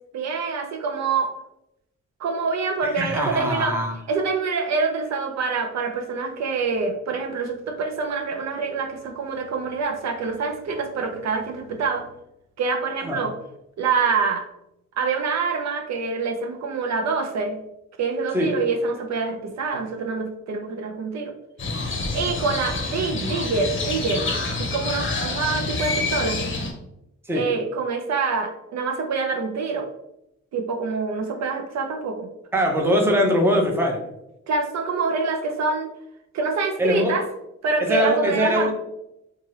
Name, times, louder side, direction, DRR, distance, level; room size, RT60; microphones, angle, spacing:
voice 1, 0.1-1.3 2.2-3.7 4.1-12.1 12.6-13.3 13.8-14.5 14.9-17.6 18.0-21.3 22.1-24.2 24.6-26.5 27.3-29.9 30.5-32.3 34.5-35.9 36.3-37.2 37.6-38.7, right 4 dB, 65° right, 4 dB, 0.5 m, -26 dB
voice 2, 3.0-3.9 13.0-13.2 18.3-18.5 27.3-27.5 32.5-34.0 36.8-37.1 37.8-38.7, equal, 10° right, 2 dB, 0.5 m, -22 dB
Crow, 21.6-26.7, left 3 dB, 40° left, 0.7 m, -27 dB
2.8 x 2.3 x 3.1 m, 0.84 s
cardioid pair, 95°, 29 cm